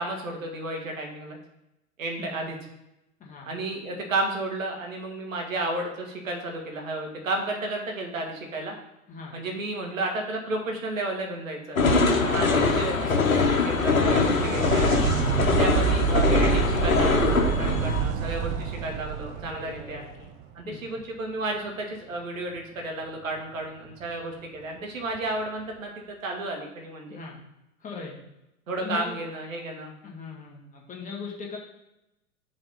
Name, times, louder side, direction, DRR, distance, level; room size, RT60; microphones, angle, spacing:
voice 1, 0.0-1.4 2.0-2.6 3.4-8.7 9.3-11.8 12.2-13.1 13.3-14.9 15.4-20.0 20.5-27.2 28.7-29.9, right 2 dB, 70° right, 2 dB, 1.8 m, -32 dB
voice 2, 2.2-2.5 3.2-3.5 9.1-9.4 12.4-13.2 19.4-20.1 20.6-20.8 27.1-27.4 27.8-28.2 28.8-29.2 30.0-31.6, left 4 dB, 20° left, -3 dB, 2.0 m, -39 dB
sound 1, 11.8-18.0, left 4 dB, 80° left, 1.1 m, -23 dB
sound 2, 13.0-20.6 24.0-24.1 25.2-25.3, right 9 dB, 30° right, 0.5 m, -28 dB
5.5 x 4.0 x 5.5 m, 0.90 s
figure-of-eight pair, 100°, 41 cm